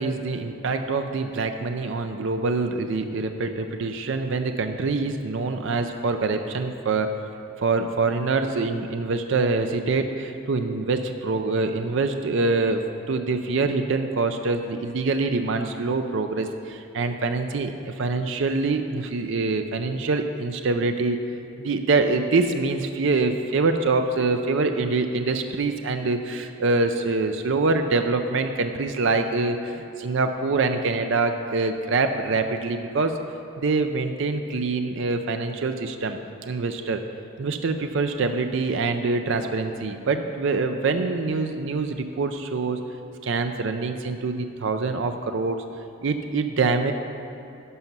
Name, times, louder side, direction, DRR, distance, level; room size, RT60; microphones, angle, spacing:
voice 1, 0.0-7.1 7.6-12.8 13.1-21.2 21.6-33.2 33.6-37.0 37.4-42.8 43.2-45.6 46.0-46.9, right 3 dB, 60° right, 7 dB, 0.5 m, -25 dB
11.0 x 5.4 x 6.0 m, 2.9 s
head